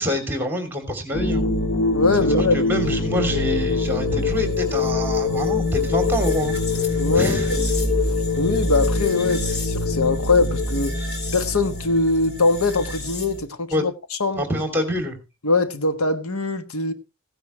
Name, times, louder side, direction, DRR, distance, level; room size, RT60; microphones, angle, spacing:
voice 1, 0.0-1.5 2.2-6.6 7.1-7.5 13.7-13.9 14.4-15.2, equal, 10° right, 2.9 m, -26 dB
sound 1, 1.1-13.4, left 3 dB, 50° left, 3.5 m, -24 dB
voice 2, 1.9-2.6 7.0-7.6 8.4-10.9 11.3-13.9 14.2-14.4 15.4-16.9, left 3 dB, 80° left, 1.3 m, -22 dB
16.5 x 9.8 x 3.2 m
head